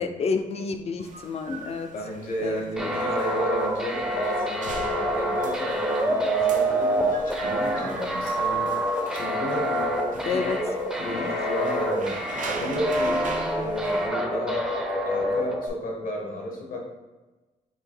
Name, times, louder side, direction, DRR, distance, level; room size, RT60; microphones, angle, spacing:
voice 1, 0.0-1.9 2.4-3.0 10.3-10.6 11.1-11.3, left 5 dB, 50° left, 7 dB, 0.4 m, -29 dB
sound 1, 1.0-14.1, right 4 dB, 65° right, 0.6 m, -40 dB
voice 2, 1.9-8.7 9.1-10.4 10.9-12.2 12.6-13.2 13.6-14.7 15.0-16.8, left 1 dB, 80° left, 0 dB, 1.1 m, -32 dB
sound 2, 2.8-15.7, right 1 dB, 5° right, 0.5 m, -26 dB
3.9 x 2.8 x 4.3 m, 1.2 s
wide cardioid pair, 135°, 14 cm